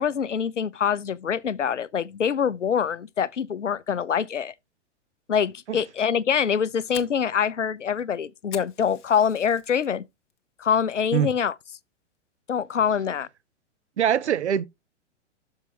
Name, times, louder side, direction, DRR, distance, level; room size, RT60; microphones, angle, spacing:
voice 1, 0.0-4.5 5.3-10.0 10.6-11.5 12.5-13.3, left 7 dB, 85° left, 0.6 m, -25 dB
Fire, 6.3-9.9 10.3-10.7 11.1-11.2 11.7-12.1, left 10 dB, 45° left, 1.1 m, -45 dB
voice 2, 14.0-14.7, right 9 dB, 70° right, 0.7 m, -22 dB
6.5 x 6.0 x 4.3 m
figure-of-eight pair, 105°, 36 cm